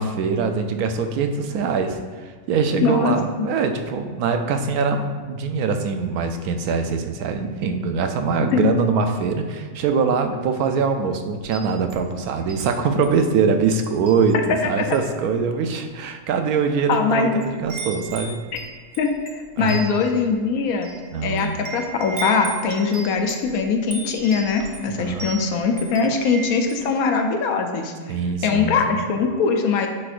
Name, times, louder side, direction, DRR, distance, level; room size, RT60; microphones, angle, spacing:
voice 1, 0.0-18.4 19.6-19.8 21.1-21.7 24.9-25.3 28.1-29.0, right 5 dB, 85° right, 6 dB, 1.1 m, -23 dB
voice 2, 2.8-3.5 8.5-8.7 14.5-14.6 16.9-17.4 19.0-20.9 21.2-27.9 28.4-29.9, left 5 dB, 75° left, 5 dB, 1.1 m, -21 dB
Wind chime, 11.4-12.7 13.0-13.3 13.8-14.6 14.9-15.2 15.9-16.0 16.7-17.1 17.4-26.9, right 4 dB, 40° right, 0.8 m, -36 dB
9.6 x 4.3 x 2.5 m, 1.5 s
omnidirectional pair, 1.5 m